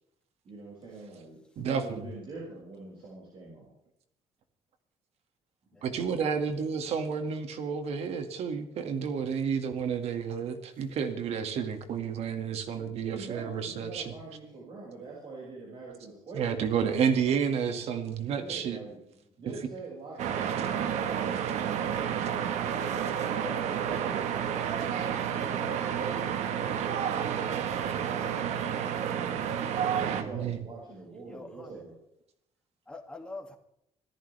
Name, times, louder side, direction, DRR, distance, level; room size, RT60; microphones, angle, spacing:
voice 1, 0.4-3.7 6.8-6.9 13.0-16.6 18.4-19.0 19.4-22.3 22.6-27.5 28.1-31.9, right 3 dB, 50° right, -5 dB, 6.1 m, -44 dB
voice 2, 1.6-2.1 5.8-14.1 16.3-18.8 30.2-30.6, right 7 dB, 65° right, 7 dB, 2.1 m, -30 dB
sound 1, 20.2-30.2, right 8 dB, 85° right, 1.4 m, -30 dB
voice 3, 31.3-31.8 32.9-33.6, left 3 dB, 10° left, 2 dB, 2.2 m, -44 dB
25.5 x 14.0 x 3.4 m, 0.74 s
cardioid pair, 145°, 11 cm